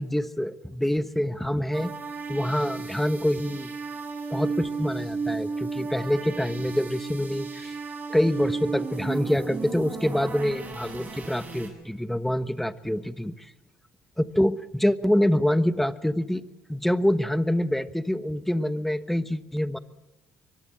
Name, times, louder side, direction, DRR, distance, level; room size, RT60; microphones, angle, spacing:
voice 1, 0.0-1.9 2.3-3.7 4.3-7.7 8.1-13.5 14.2-16.4 16.7-19.8, equal, 5° left, 12 dB, 1.2 m, -26 dB
sound 1, 1.7-11.7, right 4 dB, 30° right, 7.5 m, -34 dB
23.5 x 21.5 x 7.7 m, 1.0 s
cardioid pair, 95°, 5 cm